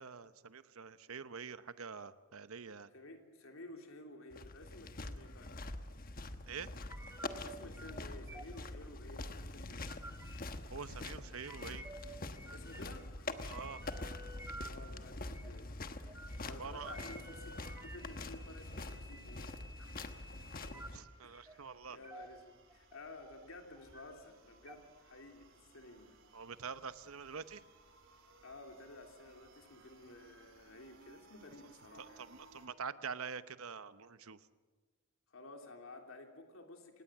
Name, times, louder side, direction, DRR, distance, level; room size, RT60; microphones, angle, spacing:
voice 1, 0.0-2.9 6.5-6.7 10.7-11.8 13.5-13.8 16.4-16.9 20.9-22.0 26.3-27.6 32.2-34.4, right 6 dB, 75° right, 13 dB, 0.9 m, -46 dB
voice 2, 2.9-5.6 7.4-9.9 12.5-13.6 14.6-20.1 20.6-20.9 21.2-26.2 28.4-32.3 35.3-37.0, left 2 dB, 70° left, 4 dB, 3.1 m, -54 dB
sound 1, 4.3-21.0, left 2 dB, 40° left, 1.2 m, -45 dB
sound 2, 6.9-7.4 7.7-8.0 8.3-8.6 9.6-10.4 11.3-12.0 12.4-13.0 13.3-14.7 15.3-15.5 16.1-16.4 16.8-20.9 21.3-21.6 22.0-22.3 22.7-23.5 23.8-24.0 24.7-24.8, right 1 dB, 10° right, 2.2 m, -52 dB
sound 3, 14.2-32.7, right 3 dB, 60° right, 3.9 m, -65 dB
27.0 x 18.0 x 7.3 m, 1.3 s
head